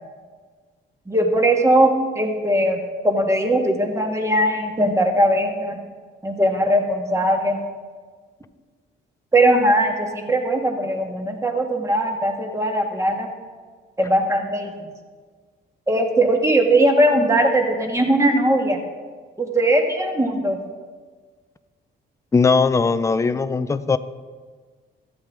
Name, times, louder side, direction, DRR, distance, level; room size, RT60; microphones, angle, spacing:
voice 1, 1.1-2.8 3.0-5.8 6.2-7.6 9.3-13.3 14.0-14.9 15.9-18.8 19.4-20.6, right 1 dB, 15° right, 2 dB, 1.5 m, -19 dB
voice 2, 22.3-24.0, left 4 dB, 15° left, 13 dB, 0.4 m, -19 dB
13.5 x 8.6 x 3.7 m, 1.5 s
cardioid pair, 90°, 20 cm